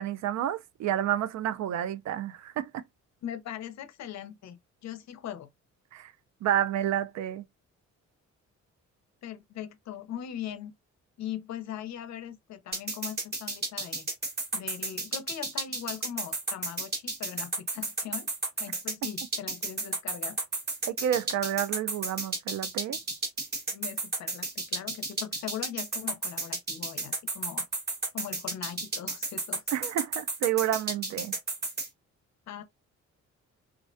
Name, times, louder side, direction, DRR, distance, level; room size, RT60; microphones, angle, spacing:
voice 1, 0.0-2.8 5.9-6.1 6.4-7.4 20.9-23.0 29.7-31.4, right 11 dB, 65° right, 0.4 m, -30 dB
voice 2, 3.2-5.5 9.2-10.7 11.2-14.1 14.5-18.3 18.6-20.4 23.7-27.7 28.1-29.6 32.5-32.6, left 10 dB, 65° left, 0.6 m, -40 dB
sound 1, 12.7-31.9, right 3 dB, 35° right, 1.1 m, -32 dB
2.4 x 2.0 x 2.5 m
cardioid pair, 90°, 30 cm